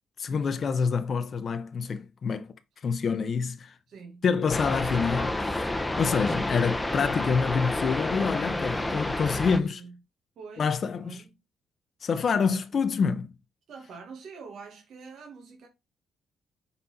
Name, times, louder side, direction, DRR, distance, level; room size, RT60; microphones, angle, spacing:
voice 1, 0.2-2.5 2.8-3.8 4.2-5.7 6.0-9.8 10.6-11.2 12.0-13.3, left 5 dB, 50° left, 0.7 m, -27 dB
voice 2, 3.9-4.2 8.5-9.0 9.3-10.0 10.4-10.7 11.0-11.3 12.4-12.6 13.7-15.7, right 5 dB, 65° right, 1.8 m, -45 dB
sound 1, 4.5-9.6, left 1 dB, 10° left, 0.8 m, -29 dB
5.6 x 4.0 x 4.2 m
cardioid pair, 90°, 0 cm